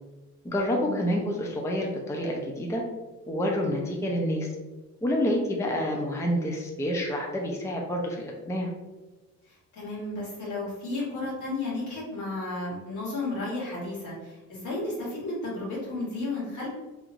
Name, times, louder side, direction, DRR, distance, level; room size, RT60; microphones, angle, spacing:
voice 1, 0.4-2.8 3.3-4.5 5.0-8.7, equal, 10° left, 0 dB, 0.5 m, -28 dB
voice 2, 9.7-16.7, left 2 dB, 75° left, -5 dB, 1.5 m, -33 dB
3.1 x 2.8 x 2.5 m, 1.2 s
cardioid pair, 90°, 30 cm